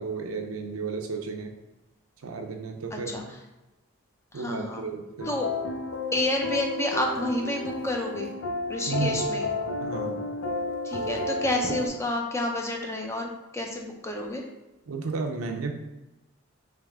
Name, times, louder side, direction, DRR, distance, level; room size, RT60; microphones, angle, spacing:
voice 1, 0.0-1.5 2.2-3.3 4.3-5.3 8.9-9.3 9.8-10.3 14.9-15.7, right 4 dB, 85° right, 3 dB, 0.6 m, -33 dB
voice 2, 2.9-3.2 4.3-4.9 5.3-5.5 6.1-8.3 8.7-9.5 10.8-13.3 13.5-14.4, left 1 dB, 15° left, 1 dB, 0.4 m, -29 dB
sound 1, 5.2-11.9, left 2 dB, 85° left, 0.6 m, -32 dB
3.4 x 3.2 x 3.5 m, 1.0 s
head